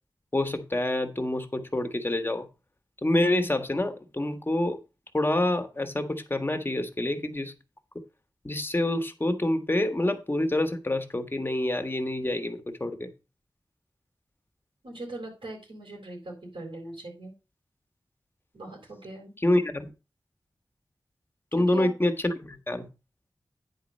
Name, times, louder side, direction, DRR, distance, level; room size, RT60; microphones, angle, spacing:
voice 1, 0.3-2.5 3.0-4.8 5.1-7.5 8.4-13.1 19.4-19.9 21.5-22.9, left 1 dB, 25° left, 1.4 m, -27 dB
voice 2, 14.8-17.3 18.5-19.3 21.5-21.9, right 1 dB, 80° right, 4.4 m, -40 dB
9.8 x 4.7 x 5.4 m
wide cardioid pair, 85°, 9 cm